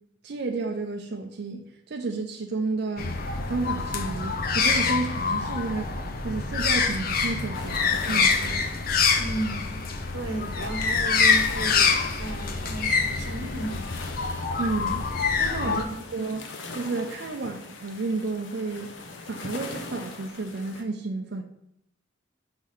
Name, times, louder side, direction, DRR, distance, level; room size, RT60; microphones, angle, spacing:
voice 1, 0.2-3.1 3.5-5.9 6.2-8.7 14.6-15.1 15.4-15.8 16.1-16.5 16.8-18.9 19.3-21.4, right 3 dB, 55° right, 0.5 m, -31 dB
sound 1, 3.0-15.8, left 5 dB, 50° left, 0.6 m, -25 dB
sound 2, 7.5-20.8, left 3 dB, 80° left, 0.8 m, -42 dB
voice 2, 9.2-9.8 10.1-13.9 15.6-15.9, right 1 dB, 90° right, 0.9 m, -34 dB
5.6 x 3.2 x 5.6 m
head